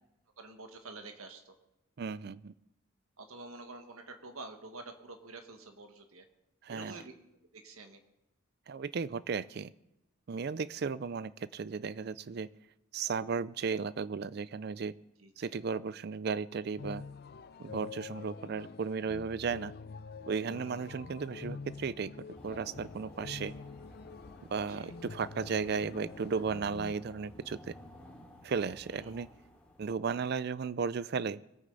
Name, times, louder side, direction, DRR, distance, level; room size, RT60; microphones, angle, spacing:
voice 1, 0.4-1.5 3.2-6.2 6.7-7.1 7.5-8.0 15.2-15.5 20.5-20.8 24.7-24.9 28.9-29.1, right 3 dB, 80° right, 6 dB, 1.5 m, -48 dB
voice 2, 2.0-2.5 6.6-6.9 8.7-9.7 10.3-12.5 12.9-14.9 15.4-17.0 17.6-19.7 20.3-22.1 22.4-23.5 24.5-27.7 28.4-29.3 29.8-31.4, right 5 dB, 50° right, 18 dB, 0.4 m, -35 dB
sound 1, 16.8-26.9, left 4 dB, 45° left, 0.4 m, -46 dB
sound 2, 22.3-30.1, left 1 dB, 5° left, 2.4 m, -54 dB
22.5 x 8.9 x 3.9 m, 0.90 s
head